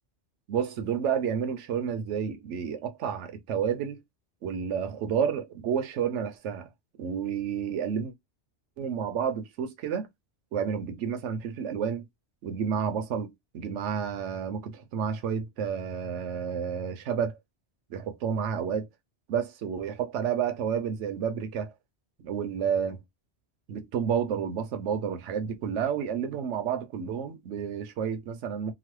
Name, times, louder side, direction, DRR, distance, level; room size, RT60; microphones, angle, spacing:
voice 1, 0.5-4.0 4.4-6.7 7.0-8.1 8.8-10.1 10.5-12.1 12.4-17.4 17.9-18.9 19.3-21.7 22.2-23.0 23.7-28.7, right 7 dB, 85° right, 0.9 m, -30 dB
2.9 x 2.1 x 3.1 m
omnidirectional pair, 1.2 m